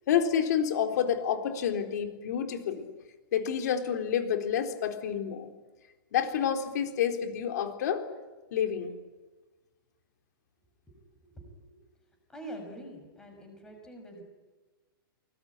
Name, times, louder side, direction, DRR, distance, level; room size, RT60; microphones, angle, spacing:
voice 1, 0.1-2.9 3.3-5.5 6.1-8.0 8.5-8.9, left 8 dB, 50° left, 6 dB, 3.9 m, -29 dB
voice 2, 11.2-11.8 12.3-14.2, right 1 dB, 5° left, 3 dB, 6.2 m, -45 dB
25.5 x 20.5 x 9.8 m, 1.2 s
hypercardioid pair, 170°, 12 cm